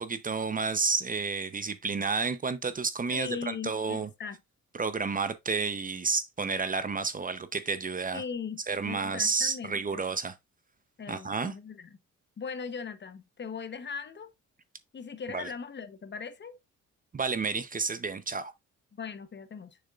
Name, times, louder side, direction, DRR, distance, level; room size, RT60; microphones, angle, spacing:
voice 1, 0.0-4.1 4.8-8.2 8.7-10.4 11.1-11.5 15.3-15.5 17.1-18.5, right 4 dB, 30° right, 0.8 m, -30 dB
voice 2, 3.1-4.4 8.1-10.0 11.0-11.9 12.4-14.3 14.9-16.6 19.0-19.8, left 6 dB, 35° left, 0.9 m, -39 dB
6.6 x 6.4 x 2.4 m
cardioid pair, 90°, 30 cm